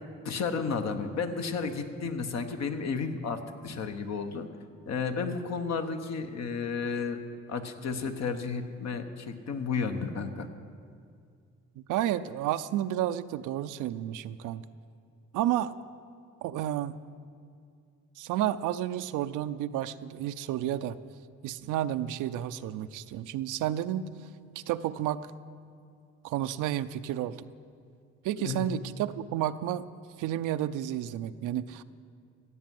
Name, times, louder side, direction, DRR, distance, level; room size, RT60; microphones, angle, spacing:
voice 1, 0.2-4.5 4.9-7.2 7.5-10.5 28.4-28.7, left 5 dB, 60° left, 7 dB, 1.2 m, -32 dB
voice 2, 11.8-14.6 15.3-15.7 16.4-17.0 18.2-21.0 21.4-24.1 24.7-25.2 26.2-27.3 28.2-29.9 30.2-31.8, right 12 dB, 90° right, 12 dB, 0.6 m, -31 dB
15.5 x 8.4 x 7.7 m, 2.3 s
cardioid pair, 90°, 30 cm